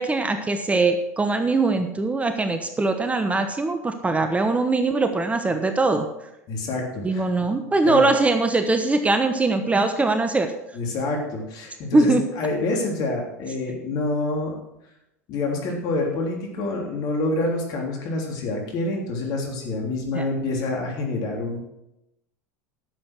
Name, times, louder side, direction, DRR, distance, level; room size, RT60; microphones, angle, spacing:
voice 1, 0.0-6.1 7.0-10.5 11.9-12.2 20.1-20.2, right 3 dB, 15° right, 7 dB, 1.1 m, -21 dB
voice 2, 6.5-8.1 10.7-14.5 15.3-21.6, left 2 dB, 50° left, 1 dB, 3.5 m, -27 dB
11.0 x 7.6 x 6.3 m, 0.88 s
hypercardioid pair, 80°, 8 cm